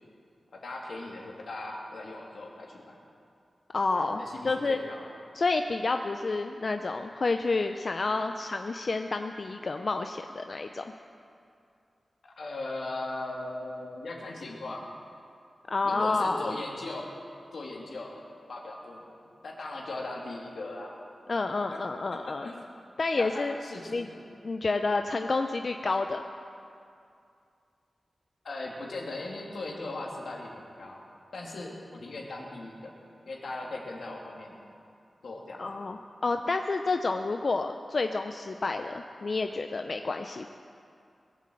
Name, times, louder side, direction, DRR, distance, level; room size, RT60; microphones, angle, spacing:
voice 1, 0.5-3.0 4.0-5.1 12.2-14.8 15.8-17.1 17.5-18.1 18.5-19.2 19.4-20.9 21.7-21.8 22.1-22.7 23.1-24.2 28.4-31.0 31.3-32.9 33.2-34.6 35.2-35.7, left 2 dB, 80° left, -2 dB, 2.6 m, -39 dB
voice 2, 3.7-4.8 5.3-10.8 15.7-16.6 21.3-22.5 23.0-23.6 23.9-24.1 24.4-26.2 35.6-40.5, left 3 dB, 50° left, 6 dB, 0.5 m, -29 dB
21.0 x 8.4 x 7.7 m, 2.5 s
wide cardioid pair, 120°, 0 cm